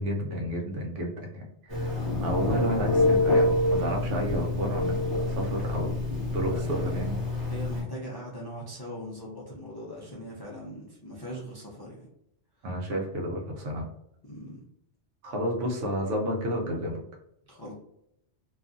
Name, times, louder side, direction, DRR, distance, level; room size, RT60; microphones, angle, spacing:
voice 1, 0.0-6.0 6.3-7.2 12.6-13.9 15.2-17.0, equal, 90° right, 0 dB, 1.1 m, -31 dB
Telephone, 1.7-7.8, left 2 dB, 25° right, 1.0 m, -27 dB
voice 2, 6.1-6.8 7.5-12.1 14.2-14.6 17.4-17.7, equal, 40° left, -4 dB, 0.3 m, -41 dB
2.6 x 2.3 x 2.5 m, 0.78 s
omnidirectional pair, 1.2 m